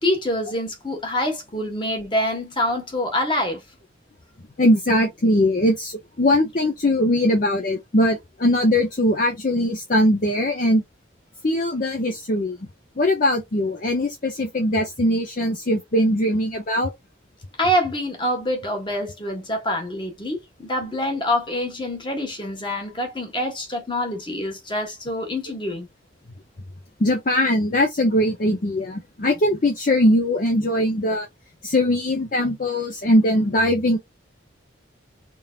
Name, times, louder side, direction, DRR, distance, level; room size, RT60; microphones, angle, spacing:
voice 1, 0.0-3.6 17.6-25.9, left 1 dB, 25° left, 1.4 m, -26 dB
voice 2, 4.6-10.8 11.4-12.6 13.0-16.9 27.0-31.3 31.6-34.0, left 1 dB, 45° left, 0.7 m, -20 dB
3.8 x 3.4 x 2.4 m
head